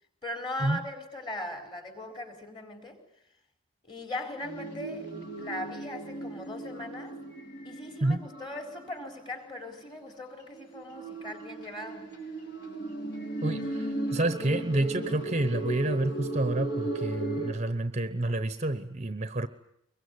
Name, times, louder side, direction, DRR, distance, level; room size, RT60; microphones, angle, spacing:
voice 1, 0.2-3.0 3.8-5.1 5.4-7.2 7.6-12.1, left 1 dB, 25° left, 4.7 m, -39 dB
sound 1, 4.4-9.6 10.4-17.5, right 2 dB, 55° left, 6.3 m, -36 dB
voice 2, 13.4-19.5, right 2 dB, 30° right, 1.0 m, -29 dB
24.5 x 22.5 x 9.5 m
head